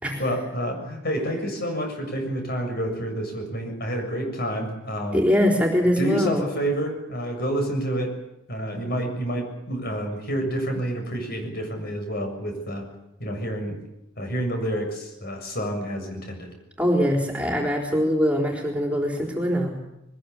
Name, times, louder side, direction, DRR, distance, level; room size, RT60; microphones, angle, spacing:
voice 1, 0.2-5.2 6.0-8.1 8.5-12.8 13.2-13.8 14.2-16.5, right 1 dB, 50° left, 4 dB, 7.2 m, -28 dB
voice 2, 5.1-6.5 16.8-19.7, equal, 5° right, 0 dB, 4.1 m, -22 dB
23.0 x 20.5 x 8.5 m, 0.87 s
head